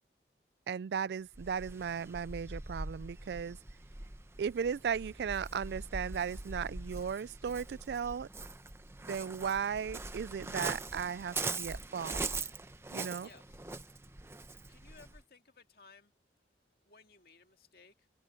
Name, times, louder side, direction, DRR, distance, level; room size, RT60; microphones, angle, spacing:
voice 1, 0.7-3.6 4.4-8.3 9.1-12.2 12.9-13.3, right 7 dB, 70° right, 0.3 m, -36 dB
Waves surf, 1.3-15.2, right 3 dB, 15° right, 0.8 m, -42 dB
voice 2, 13.2-13.7 14.7-16.1 16.9-18.1, left 4 dB, 60° left, 2.1 m, -60 dB
open air
head